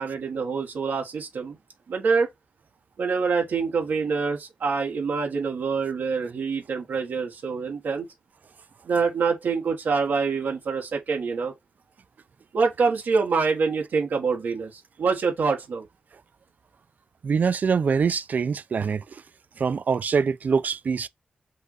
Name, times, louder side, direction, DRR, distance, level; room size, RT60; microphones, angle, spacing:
voice 1, 0.0-1.6 1.9-2.3 3.0-8.1 8.8-11.5 12.5-15.9, right 5 dB, 85° right, 1.3 m, -25 dB
voice 2, 17.2-19.0 19.6-21.1, right 5 dB, 60° right, 0.4 m, -24 dB
5.4 x 2.5 x 4.0 m
cardioid pair, 75°, 3 cm